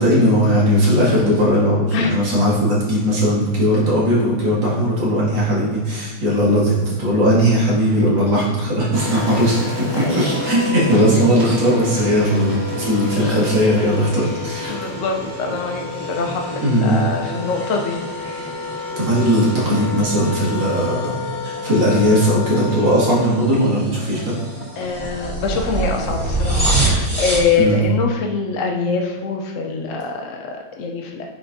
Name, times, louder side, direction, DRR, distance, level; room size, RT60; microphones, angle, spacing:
voice 1, 0.0-9.6 9.9-14.8 16.6-17.0 19.0-21.1 21.4-24.3 27.6-27.8, equal, 70° right, -7 dB, 3.0 m, -18 dB
Wind instrument woodwind instrument, 8.8-23.7, left 4 dB, 25° left, 0.7 m, -31 dB
sound 1, 8.9-20.1, right 2 dB, 35° right, 1.6 m, -35 dB
sound 2, 11.3-27.6, right 2 dB, 15° right, 2.4 m, -28 dB
voice 2, 14.7-18.0 24.8-31.2, left 4 dB, 70° left, 2 dB, 0.7 m, -24 dB
9.2 x 6.0 x 2.7 m, 1.3 s
omnidirectional pair, 2.2 m